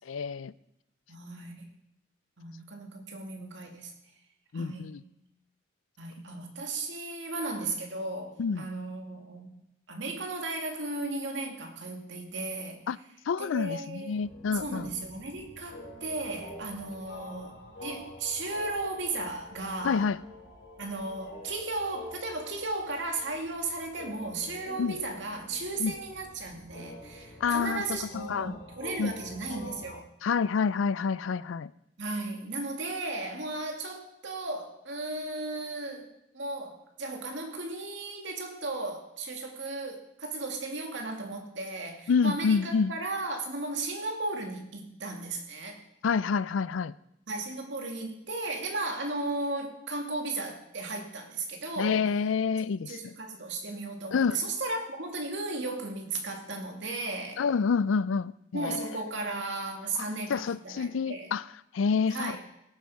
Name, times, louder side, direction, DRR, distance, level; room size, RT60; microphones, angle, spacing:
voice 1, 0.1-0.5 4.5-5.0 8.4-8.7 12.9-13.0 13.3-14.9 19.8-20.2 24.8-24.9 25.8-25.9 27.4-28.5 29.0-29.1 30.2-31.7 42.1-42.9 46.0-46.9 51.8-53.1 54.1-54.4 57.4-58.9 60.3-61.4 61.7-62.4, left 5 dB, 90° left, 0.4 m, -28 dB
voice 2, 1.1-1.6 2.4-3.9 4.5-5.0 6.0-9.5 9.9-12.8 13.4-14.1 14.6-17.5 17.8-20.0 20.8-30.0 32.0-36.1 36.3-45.8 47.3-52.0 52.9-57.4 58.5-61.3 62.1-62.4, right 2 dB, 70° right, 2.2 m, -35 dB
sound 1, 14.2-30.0, left 1 dB, 65° left, 3.9 m, -47 dB
17.5 x 8.2 x 4.8 m
head